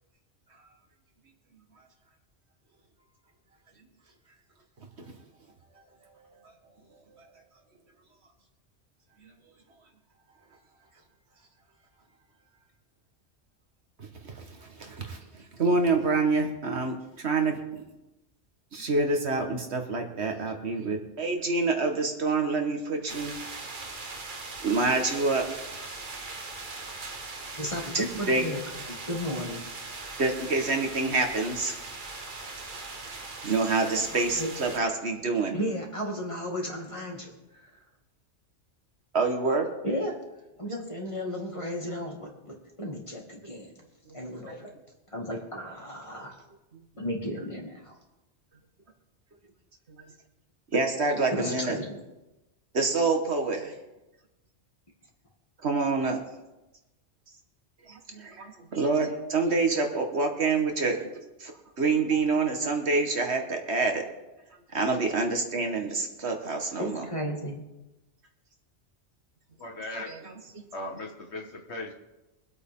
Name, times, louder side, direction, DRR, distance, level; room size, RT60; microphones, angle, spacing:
voice 1, 14.0-17.8 18.7-23.3 24.6-25.6 27.9-28.5 30.2-31.8 33.0-33.1 33.4-35.6 39.1-39.7 44.1-44.2 44.5-44.6 46.7-46.8 49.9-50.0 50.7-51.8 52.7-53.8 55.6-56.2 57.9-61.0 61.4-61.5 61.8-64.0 64.7-67.1 69.9-70.6, right 3 dB, 65° right, 4 dB, 1.8 m, -27 dB
sound 1, 23.1-34.8, right 3 dB, 45° right, 1.4 m, -40 dB
voice 2, 27.6-28.6 28.9-30.1 34.1-34.5 35.5-37.3 37.6-37.7 39.8-40.2 40.6-43.7 44.1-44.7 45.1-46.3 47.0-47.9 51.3-51.9 66.8-67.6, equal, 25° left, 0 dB, 2.4 m, -34 dB
voice 3, 69.6-70.1 70.7-71.9, left 2 dB, 70° left, 2 dB, 1.9 m, -38 dB
23.5 x 8.5 x 3.8 m, 1.0 s
omnidirectional pair, 1.2 m